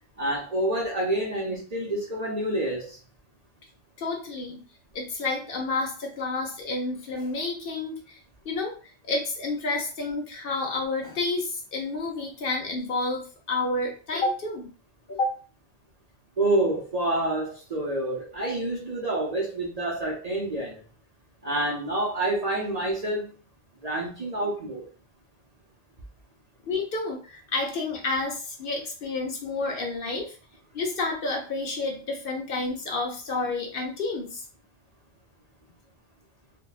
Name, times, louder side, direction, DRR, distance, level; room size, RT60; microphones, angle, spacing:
voice 1, 0.2-3.0 16.4-20.8 21.4-23.4 23.8-24.9, right 1 dB, 45° right, 0.6 m, -28 dB
voice 2, 4.0-4.6 4.9-14.7 15.1-15.4 26.7-30.4 30.7-34.4, left 3 dB, 60° left, 0.8 m, -30 dB
3.4 x 2.2 x 2.3 m
omnidirectional pair, 1.2 m